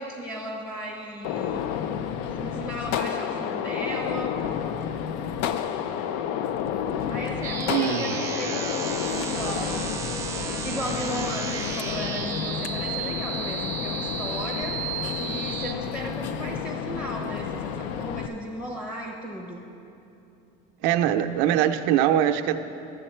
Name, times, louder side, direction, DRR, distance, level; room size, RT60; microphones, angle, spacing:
voice 1, 0.0-1.6 2.3-4.4 7.1-9.9 10.5-19.7, equal, 15° left, 0 dB, 0.7 m, -35 dB
Gunshot gunfire, 1.2-18.3, left 8 dB, 85° left, 0.5 m, -30 dB
sound 1, 7.4-15.7, right 5 dB, 15° right, 0.5 m, -33 dB
voice 2, 7.7-8.6 20.8-22.6, right 11 dB, 90° right, 6 dB, 0.5 m, -23 dB
12.0 x 7.8 x 4.3 m, 2.8 s
cardioid pair, 170°, 20 cm